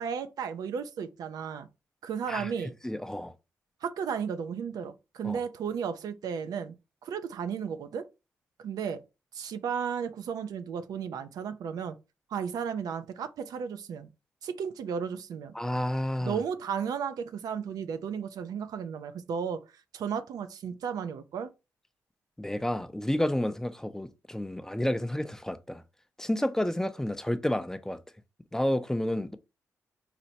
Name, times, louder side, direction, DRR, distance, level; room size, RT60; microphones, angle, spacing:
voice 1, 0.0-1.7 2.0-2.7 3.8-6.8 7.0-8.1 8.6-9.0 9.3-12.0 12.3-14.1 14.4-15.5 16.2-19.7 19.9-21.5, right 7 dB, 75° right, 0.4 m, -34 dB
voice 2, 2.8-3.3 5.2-5.4 15.6-16.4 22.4-25.8 26.2-28.0 28.5-29.4, left 1 dB, 10° left, 0.4 m, -30 dB
4.1 x 2.1 x 2.7 m
supercardioid pair, 55°, 6 cm